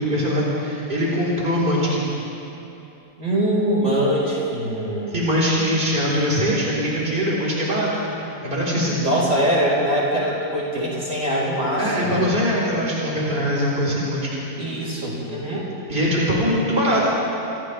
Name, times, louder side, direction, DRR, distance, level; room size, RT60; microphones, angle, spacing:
voice 1, 0.0-2.1 5.1-8.1 8.4-9.0 11.8-14.4 15.9-17.0, equal, 30° right, -6 dB, 4.6 m, -22 dB
voice 2, 3.2-5.1 9.0-12.2 14.6-15.7, equal, 50° right, -5 dB, 5.3 m, -23 dB
28.0 x 27.5 x 3.5 m, 2.9 s
omnidirectional pair, 1.7 m